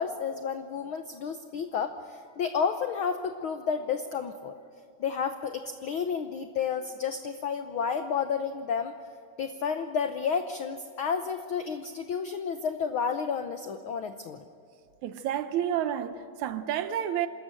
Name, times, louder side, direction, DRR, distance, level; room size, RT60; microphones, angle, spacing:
voice 1, 0.0-4.5 5.0-8.9 9.4-14.5, left 6 dB, 80° left, 1.1 m, -31 dB
voice 2, 15.0-17.3, right 10 dB, 75° right, 2.2 m, -30 dB
26.5 x 13.5 x 9.1 m
omnidirectional pair, 3.5 m